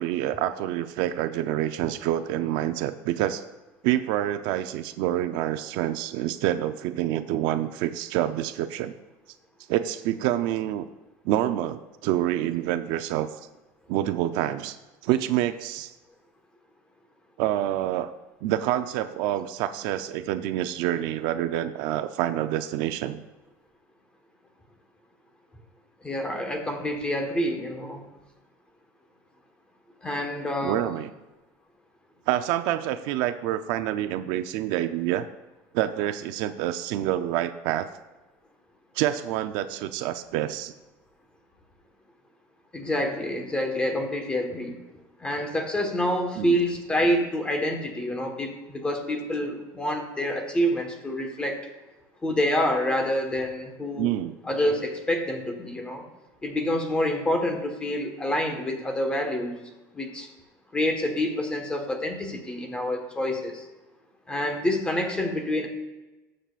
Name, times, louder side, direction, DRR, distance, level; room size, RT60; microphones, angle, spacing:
voice 1, 0.0-3.4 3.8-8.9 9.7-10.9 11.2-13.3 13.9-14.8 15.0-15.9 17.4-18.1 18.4-23.2 30.6-31.1 32.3-35.3 35.7-37.9 39.0-40.7 46.4-46.6 54.0-54.3, right 12 dB, 70° right, 10 dB, 0.5 m, -27 dB
voice 2, 26.0-28.0 30.0-30.9 42.7-44.8 45.2-51.6 52.2-54.1 54.4-56.0 56.4-59.6 59.9-60.3 60.7-63.6 64.3-65.7, left 1 dB, 15° left, 4 dB, 1.4 m, -27 dB
19.5 x 7.5 x 2.5 m, 1.1 s
cardioid pair, 160°, 8 cm